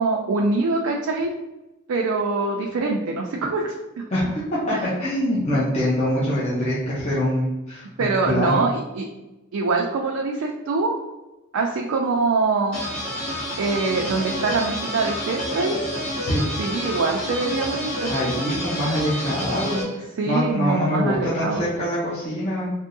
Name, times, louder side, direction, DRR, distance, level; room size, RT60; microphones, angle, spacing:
voice 1, 0.0-1.3 1.9-4.0 4.7-4.9 8.0-9.1 9.5-11.0 11.5-12.8 13.6-15.8 16.6-18.1 20.2-21.7, right 3 dB, 90° right, 0 dB, 0.4 m, -24 dB
voice 2, 4.1-8.6 16.2-16.5 18.1-22.7, equal, 35° left, -8 dB, 0.7 m, -24 dB
sound 1, 12.7-19.8, equal, 80° left, 1.4 m, -29 dB
3.5 x 2.7 x 2.6 m, 1.0 s
head